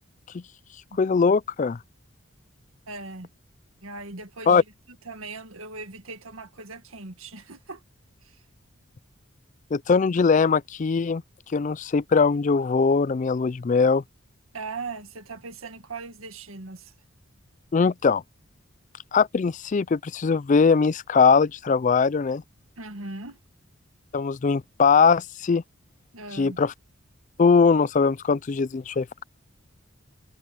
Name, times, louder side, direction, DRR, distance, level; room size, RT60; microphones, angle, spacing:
voice 1, 1.0-1.8 4.5-4.6 9.7-11.2 11.5-14.0 17.7-18.2 19.1-22.4 24.1-25.6 26.3-26.7 27.4-29.2, left 5 dB, 35° left, 0.4 m, -21 dB
voice 2, 2.9-3.3 3.8-4.6 5.1-7.8 8.2-8.4 14.5-16.9 22.8-23.4 26.1-26.6, right 3 dB, 90° right, 1.8 m, -39 dB
head